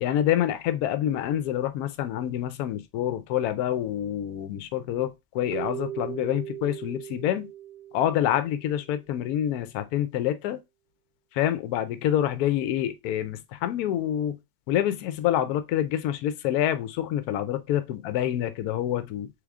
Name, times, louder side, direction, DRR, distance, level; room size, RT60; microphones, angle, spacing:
voice 1, 0.0-7.5 7.9-10.6 11.3-14.4 14.7-19.3, left 11 dB, 70° left, 0.9 m, -27 dB
Keyboard (musical), 5.5-8.8, right 12 dB, 70° right, 1.1 m, -38 dB
3.6 x 3.4 x 3.5 m
omnidirectional pair, 2.0 m